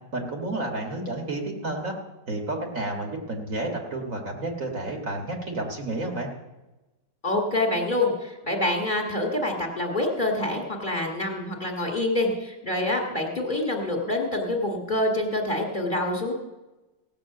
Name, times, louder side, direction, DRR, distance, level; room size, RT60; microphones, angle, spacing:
voice 1, 0.1-1.9 2.3-6.3, right 2 dB, 50° right, 1 dB, 2.1 m, -31 dB
voice 2, 7.2-16.3, left 1 dB, 30° left, 0 dB, 2.0 m, -26 dB
17.0 x 6.1 x 7.7 m, 1.1 s
omnidirectional pair, 1.8 m